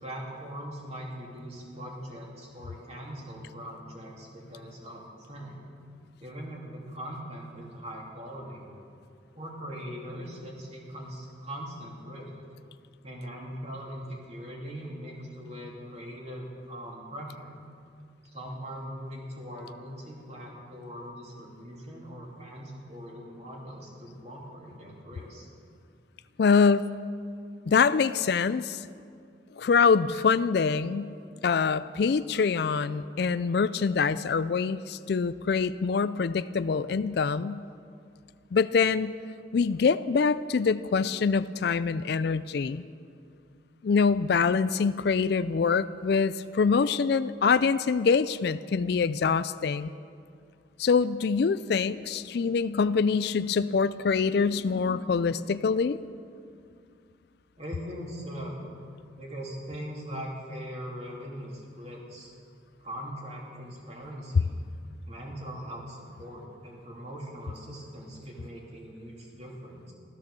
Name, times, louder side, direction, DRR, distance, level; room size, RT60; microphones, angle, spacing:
voice 1, 0.0-5.7 6.2-8.7 9.3-12.3 13.0-17.5 18.3-25.5 57.6-58.6 59.2-62.3 62.8-64.5 65.0-69.9, equal, 35° right, -2 dB, 2.9 m, -41 dB
voice 2, 26.4-26.9 27.7-28.9 29.6-31.1 31.4-37.6 38.5-39.1 39.5-42.9 43.8-49.9 50.8-56.0, left 5 dB, 55° left, 15 dB, 0.4 m, -25 dB
15.0 x 13.5 x 6.8 m, 2.3 s
head